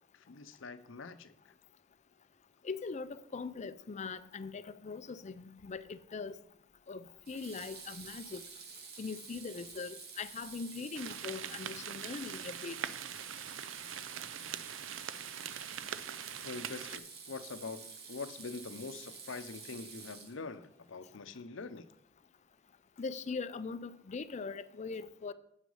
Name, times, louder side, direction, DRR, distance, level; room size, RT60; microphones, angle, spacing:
voice 1, 0.1-1.5 16.4-21.9, left 4 dB, 75° left, 0.6 m, -44 dB
voice 2, 2.6-6.3 6.9-8.4 9.0-12.8 23.0-25.3, left 4 dB, 35° left, 0.4 m, -41 dB
Water tap faucet / Sink (filling or washing), 5.6-5.9 7.2-20.7, right 5 dB, 55° right, 1.4 m, -49 dB
sound 1, 10.9-17.0, right 9 dB, 75° right, 0.5 m, -43 dB
8.2 x 6.1 x 5.5 m
head